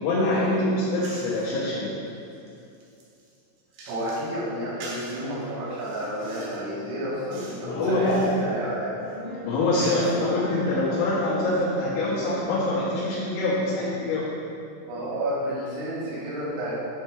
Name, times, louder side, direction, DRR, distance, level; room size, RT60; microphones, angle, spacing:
voice 1, 0.0-1.9 7.3-8.5 9.4-14.3, left 2 dB, 75° left, -10 dB, 3.8 m, -25 dB
sound 1, 1.0-1.5 2.1-4.3 4.8-5.2 5.7-6.7 7.3-7.7 7.9-8.4 9.0-10.5, right 2 dB, 70° right, 3.4 m, -45 dB
voice 2, 3.9-8.9 9.8-10.0 14.9-16.8, right 1 dB, 85° right, -10 dB, 4.7 m, -31 dB
sound 2, 6.0-12.4, left 1 dB, 60° left, 1.6 m, -40 dB
10.5 x 4.4 x 4.6 m, 2.6 s
omnidirectional pair, 5.9 m